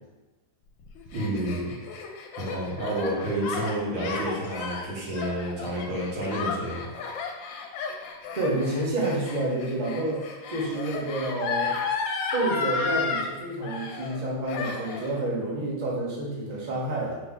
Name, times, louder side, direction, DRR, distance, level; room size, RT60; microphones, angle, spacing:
Gasp, 0.8-13.3 13.6-14.2 14.5-15.1, left 5 dB, 75° left, 1.3 m, -33 dB
voice 1, 1.1-1.8 2.4-6.9, right 1 dB, 75° right, -5 dB, 1.9 m, -30 dB
voice 2, 8.3-11.8 12.3-17.2, right 2 dB, 35° right, -4 dB, 0.7 m, -29 dB
5.2 x 2.8 x 3.6 m, 1.1 s
omnidirectional pair, 2.2 m